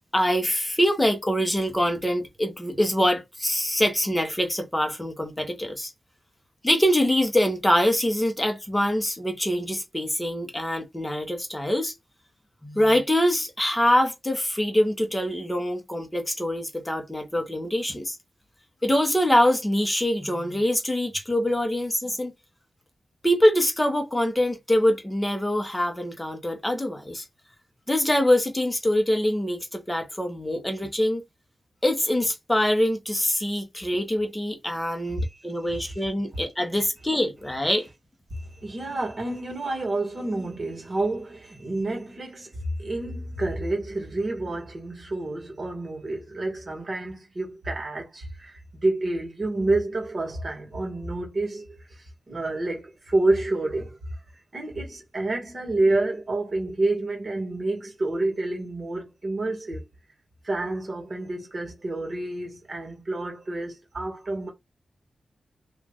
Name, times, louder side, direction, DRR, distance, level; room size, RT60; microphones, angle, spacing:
voice 1, 0.1-5.9 6.6-11.9 12.6-18.2 18.8-22.3 23.2-27.2 27.9-31.2 31.8-37.8, equal, 10° left, 1.1 m, -24 dB
voice 2, 35.0-35.4 35.8-36.0 38.3-54.2 54.5-59.9 60.4-64.5, right 2 dB, 40° right, 1.9 m, -29 dB
3.1 x 2.8 x 3.7 m
wide cardioid pair, 110°, 0 cm